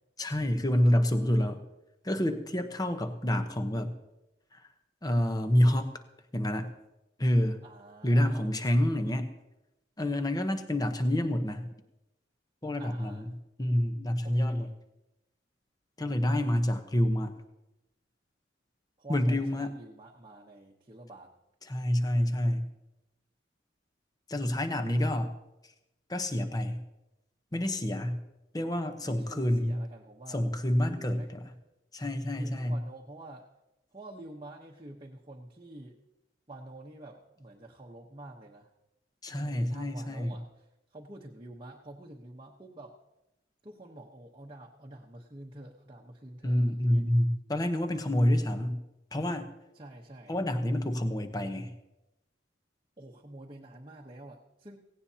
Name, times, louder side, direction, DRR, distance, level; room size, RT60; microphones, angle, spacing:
voice 1, 0.2-1.6 2.0-3.9 5.0-5.9 6.3-6.7 7.2-7.6 8.0-9.3 10.0-11.7 12.6-13.3 13.6-14.7 16.0-17.3 19.1-19.8 21.6-22.7 24.3-25.3 26.1-26.8 27.5-28.2 28.5-29.8 30.3-31.4 31.9-32.8 39.2-40.4 46.4-48.8 49.1-49.5 50.3-51.7, left 1 dB, 20° left, 8 dB, 0.9 m, -28 dB
voice 2, 7.6-8.5 12.8-13.2 14.2-14.7 19.0-21.3 29.0-30.4 30.8-31.3 32.4-33.4 33.9-36.0 36.5-38.7 39.3-40.5 40.9-43.0 43.6-46.6 46.9-47.0 49.7-50.3 53.0-54.8, right 1 dB, 25° right, -2 dB, 1.0 m, -47 dB
17.0 x 17.0 x 2.8 m, 0.93 s
head